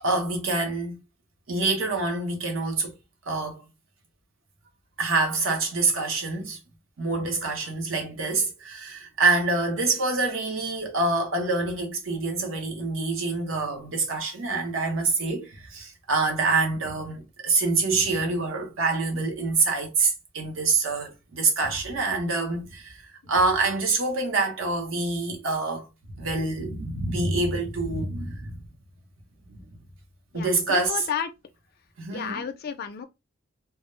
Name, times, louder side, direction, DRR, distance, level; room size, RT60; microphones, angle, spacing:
voice 1, 0.0-1.0 1.5-3.0 3.3-3.6 5.0-6.6 7.0-25.9 26.2-28.6 29.5-29.8 30.3-30.9 32.0-32.4, right 3 dB, 75° right, 0.8 m, -26 dB
voice 2, 30.3-31.3 32.1-33.1, left 7 dB, 50° left, 0.3 m, -32 dB
2.2 x 2.0 x 3.0 m
head